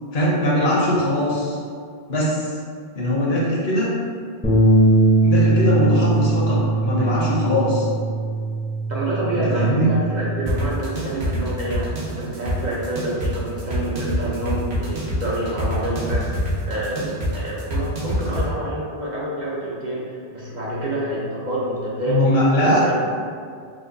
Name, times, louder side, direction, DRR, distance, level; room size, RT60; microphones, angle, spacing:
voice 1, 0.1-1.6 2.1-2.5 2.9-3.9 5.2-7.9 9.5-9.9 22.1-23.0, equal, 70° left, -6 dB, 1.1 m, -20 dB
Bass guitar, 4.4-10.7, right 2 dB, 10° left, 0.5 m, -20 dB
voice 2, 8.9-22.2 22.6-23.0, right 1 dB, 50° right, -6 dB, 0.6 m, -27 dB
sound 1, 10.5-18.5, equal, 70° right, 1.1 m, -26 dB
5.0 x 2.1 x 2.5 m, 2.2 s
omnidirectional pair, 1.1 m